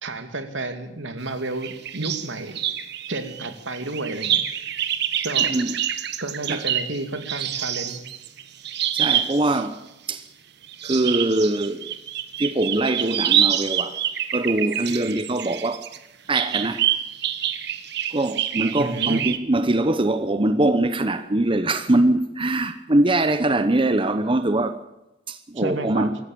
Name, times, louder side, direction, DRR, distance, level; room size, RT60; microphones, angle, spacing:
voice 1, 0.0-2.6 3.1-4.4 5.2-5.5 6.2-8.0 9.5-9.7 18.8-19.2 25.6-26.1, right 2 dB, 80° right, 2.5 m, -31 dB
sound 1, 1.6-2.3 2.5-9.5 10.6-16.0 16.3-19.4, right 10 dB, 60° right, 1.4 m, -26 dB
voice 2, 8.9-9.8 10.1-10.3 10.8-11.9 12.4-14.0 14.3-15.9 16.3-16.9 18.1-24.8 25.3-26.2, right 2 dB, 30° right, 0.9 m, -22 dB
24.5 x 14.0 x 8.7 m
head